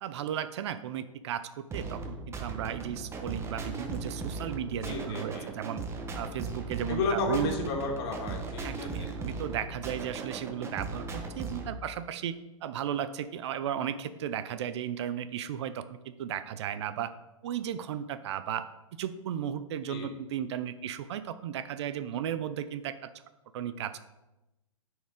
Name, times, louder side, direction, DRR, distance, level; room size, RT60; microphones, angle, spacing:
voice 1, 0.0-5.8 6.1-7.5 8.6-17.1 17.4-18.7 18.9-23.1 23.5-24.0, right 9 dB, 55° right, 13 dB, 0.6 m, -35 dB
sound 1, 1.7-11.7, right 4 dB, 15° right, 1.2 m, -38 dB
voice 2, 4.8-5.5 6.9-9.1 19.9-20.1, left 3 dB, 45° left, 1 dB, 2.1 m, -32 dB
9.9 x 4.5 x 4.9 m, 1.0 s
hypercardioid pair, 115°, 18 cm